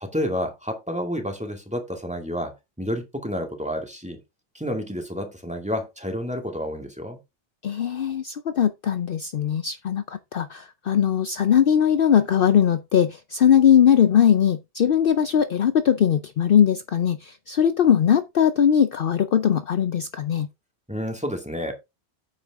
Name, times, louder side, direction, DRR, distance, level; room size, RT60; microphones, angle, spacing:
voice 1, 0.0-4.2 4.5-7.2 20.9-21.7, equal, 5° right, 2.2 m, -30 dB
voice 2, 7.6-20.5, left 9 dB, 55° left, 0.8 m, -20 dB
9.0 x 7.9 x 3.5 m
omnidirectional pair, 1.2 m